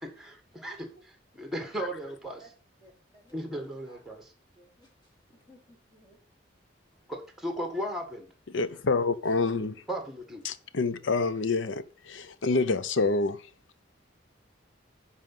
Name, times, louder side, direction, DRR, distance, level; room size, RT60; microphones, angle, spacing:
voice 1, 0.0-0.9 1.4-2.4 3.3-4.3 7.1-8.3 9.9-10.4, equal, ahead, 1.6 m, -36 dB
voice 2, 2.8-3.5 3.8-4.0 4.5-6.2 6.8-7.0 8.6-8.8 9.2-9.5, right 1 dB, 25° left, 3.0 m, -58 dB
voice 3, 8.5-9.7 10.4-13.4, left 3 dB, 85° left, 0.7 m, -27 dB
10.5 x 4.1 x 5.5 m
head